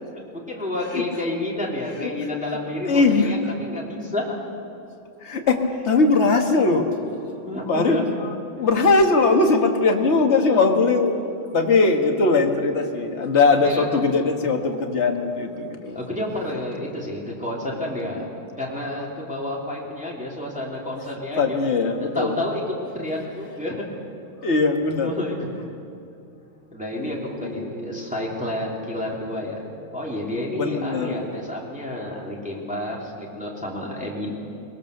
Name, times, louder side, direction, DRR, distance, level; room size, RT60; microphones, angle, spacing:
voice 1, 0.1-4.4 7.4-8.0 13.6-13.9 15.9-18.3 18.6-21.6 22.0-22.6 22.9-23.8 25.0-25.5 26.7-29.6 29.9-34.3, left 1 dB, 5° right, -3 dB, 3.0 m, -30 dB
voice 2, 2.8-3.3 5.2-7.0 7.7-16.0 18.0-18.2 21.4-22.3 24.4-25.1 27.0-27.1 27.4-28.1 30.5-31.3, left 3 dB, 35° left, 3 dB, 1.7 m, -20 dB
22.5 x 20.0 x 6.7 m, 2.7 s
omnidirectional pair, 2.3 m